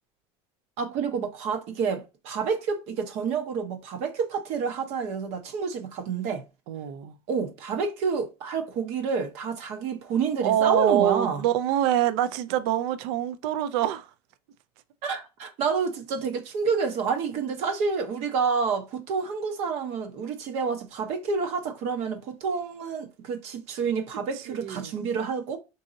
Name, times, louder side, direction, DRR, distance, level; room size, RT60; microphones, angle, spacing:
voice 1, 0.8-6.4 7.3-11.4 15.0-25.6, right 5 dB, 55° right, 0.7 m, -29 dB
voice 2, 6.7-7.2 10.4-14.1 24.5-25.0, right 11 dB, 85° right, 0.4 m, -25 dB
3.8 x 2.7 x 2.5 m
cardioid pair, 160°, 13 cm